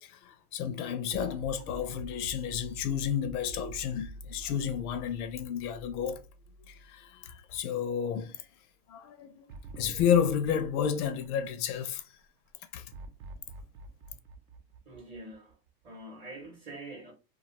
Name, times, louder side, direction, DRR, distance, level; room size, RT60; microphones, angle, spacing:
voice 1, 0.0-6.2 6.7-8.5 8.9-9.5 9.7-12.0 12.7-12.8, left 8 dB, 70° left, 0.5 m, -31 dB
sound 1, 1.1-7.4 7.8-7.9 9.5-12.0 12.9-15.7, right 1 dB, 60° right, 0.6 m, -47 dB
voice 2, 14.9-15.5 15.8-17.1, right 2 dB, 20° right, 0.6 m, -45 dB
2.4 x 2.3 x 2.8 m
supercardioid pair, 135°, 45 cm